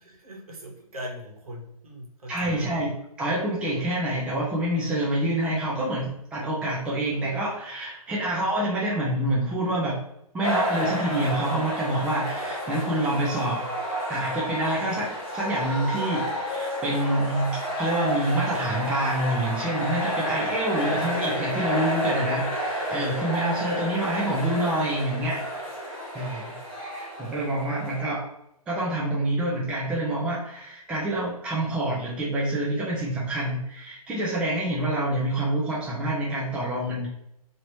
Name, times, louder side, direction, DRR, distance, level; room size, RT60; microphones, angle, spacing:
voice 1, 0.0-2.8, equal, 65° right, 0 dB, 1.2 m, -40 dB
voice 2, 2.3-10.0 10.3-13.6 14.1-25.5 26.1-28.3 28.7-37.1, right 1 dB, 5° right, -6 dB, 0.5 m, -27 dB
sound 1, 10.4-28.0, equal, 10° left, 1.4 m, -30 dB
2.9 x 2.8 x 2.9 m, 0.78 s
figure-of-eight pair, 140°, 20 cm